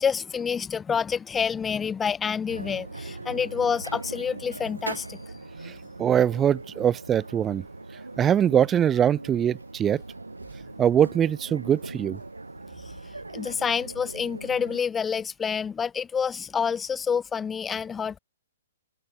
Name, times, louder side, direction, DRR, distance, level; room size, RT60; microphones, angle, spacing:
voice 1, 0.0-5.3 13.3-18.2, left 6 dB, 15° left, 1.9 m, -28 dB
sound 1, 2.5-14.8, right 2 dB, 85° right, 6.4 m, -40 dB
voice 2, 5.6-7.7 8.2-10.0 10.8-12.2, right 9 dB, 20° right, 3.2 m, -22 dB
open air
figure-of-eight pair, 120°, 0 cm